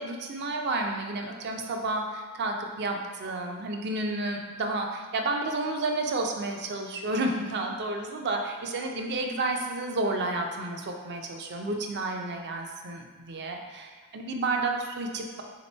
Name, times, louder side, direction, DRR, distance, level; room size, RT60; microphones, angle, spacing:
voice 1, 0.0-15.4, right 2 dB, 50° right, 3 dB, 0.5 m, -31 dB
3.6 x 2.9 x 4.2 m, 1.4 s
head